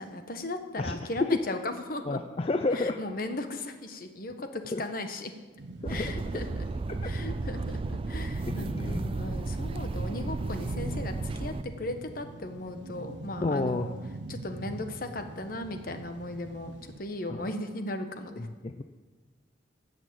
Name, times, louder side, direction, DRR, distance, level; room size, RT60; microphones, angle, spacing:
voice 1, 0.0-2.2 2.7-5.3 5.9-6.7 7.0-14.0 14.3-18.5, left 2 dB, 50° left, 7 dB, 1.2 m, -37 dB
voice 2, 0.8-1.3 2.1-3.0 4.7-4.8 5.8-6.4 7.0-7.1 8.5-9.0 13.4-13.9 17.3-17.5 18.4-18.8, left 2 dB, 30° left, 8 dB, 0.4 m, -31 dB
sound 1, 5.6-17.0, right 2 dB, 80° right, 0.7 m, -41 dB
sound 2, 5.8-11.6, right 3 dB, 30° right, 0.3 m, -34 dB
13.5 x 6.2 x 8.7 m, 1.4 s
head